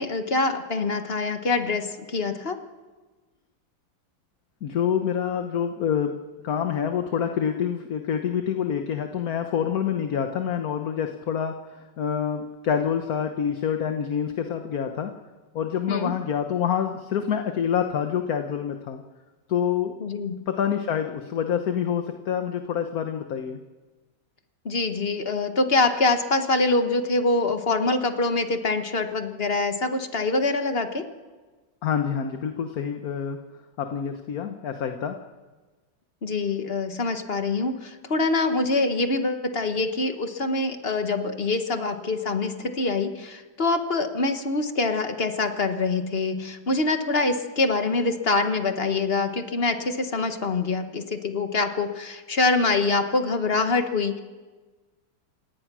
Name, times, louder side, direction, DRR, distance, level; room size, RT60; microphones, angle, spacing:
voice 1, 0.0-2.5 15.9-16.1 20.0-20.3 24.6-31.0 36.2-54.2, left 3 dB, 35° left, 7 dB, 1.4 m, -25 dB
voice 2, 4.6-6.2 6.4-15.1 15.5-19.0 19.5-19.9 20.5-23.6 31.8-33.4 33.8-35.2, left 8 dB, 55° left, 6 dB, 1.4 m, -27 dB
28.5 x 18.5 x 6.2 m, 1.3 s
omnidirectional pair, 2.1 m